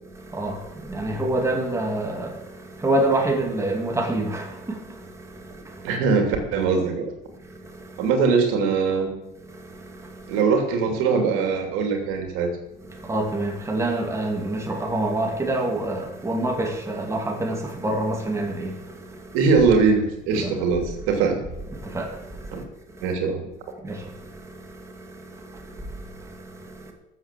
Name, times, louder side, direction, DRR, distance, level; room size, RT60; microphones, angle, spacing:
voice 1, 0.0-6.0 7.3-8.1 9.4-10.4 12.8-19.4 20.3-20.7 21.7-23.1 23.8-26.9, right 1 dB, 15° right, 2.6 m, -28 dB
voice 2, 5.8-7.1 8.0-9.1 10.3-12.5 19.3-21.4 22.5-22.6 23.0-23.4, right 5 dB, 90° right, 2.9 m, -21 dB
13.5 x 7.6 x 7.5 m
cardioid pair, 140°, 20 cm